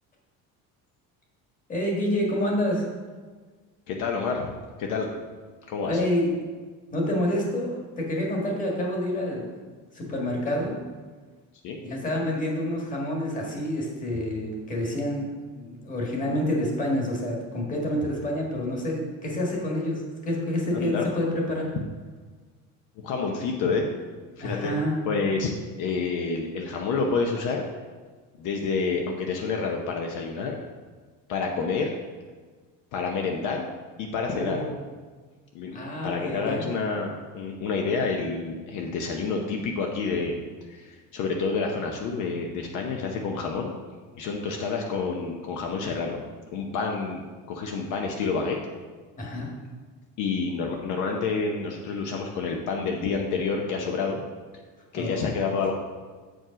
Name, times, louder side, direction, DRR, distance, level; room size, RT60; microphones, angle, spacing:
voice 1, 1.7-2.9 5.8-6.3 6.9-9.5 9.9-10.8 11.8-21.7 24.4-25.0 34.3-34.8 35.7-36.7 49.2-49.5 54.9-55.3, left 1 dB, 25° left, -2 dB, 1.6 m, -28 dB
voice 2, 3.9-4.5 4.8-5.1 5.7-6.0 11.6-11.8 20.7-21.0 23.0-23.9 24.4-24.7 25.0-25.5 25.8-27.7 28.4-30.6 31.3-31.9 32.9-33.6 34.0-34.6 35.5-35.8 36.0-40.4 40.7-43.7 44.1-46.2 46.5-48.6 50.2-54.2 54.9-55.7, left 4 dB, 65° left, 1 dB, 0.9 m, -28 dB
7.6 x 5.1 x 5.0 m, 1.4 s
cardioid pair, 165°, 33 cm